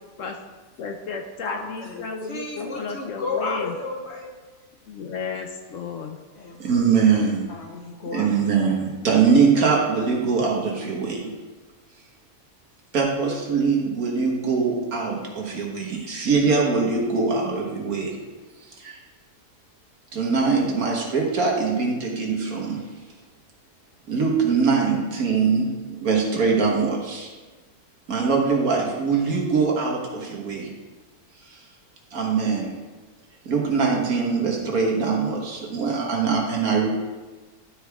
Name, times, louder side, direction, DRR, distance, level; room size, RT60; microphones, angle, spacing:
voice 1, 0.8-3.7 4.9-6.2, left 5 dB, 65° left, 3 dB, 0.9 m, -33 dB
voice 2, 1.4-4.3 6.3-7.1 7.5-8.8, left 3 dB, 45° left, -1 dB, 1.4 m, -33 dB
voice 3, 6.6-7.5 8.1-11.3 12.9-18.2 18.8-19.0 20.1-23.0 24.1-27.3 28.1-30.7 31.5-31.6 32.1-32.8 33.4-36.9, right 5 dB, 70° right, -1 dB, 1.8 m, -22 dB
12.0 x 4.7 x 3.5 m, 1.3 s
omnidirectional pair, 1.6 m